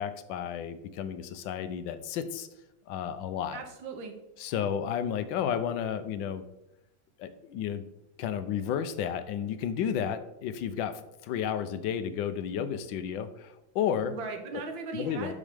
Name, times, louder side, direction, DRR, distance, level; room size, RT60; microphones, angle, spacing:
voice 1, 0.0-2.5 2.9-3.6 4.4-6.4 7.2-7.8 8.2-14.1 14.9-15.3, left 8 dB, 75° left, 11 dB, 1.2 m, -32 dB
voice 2, 3.5-4.1 14.1-15.3, right 4 dB, 65° right, 4 dB, 1.8 m, -38 dB
8.6 x 6.4 x 3.4 m, 0.88 s
omnidirectional pair, 2.3 m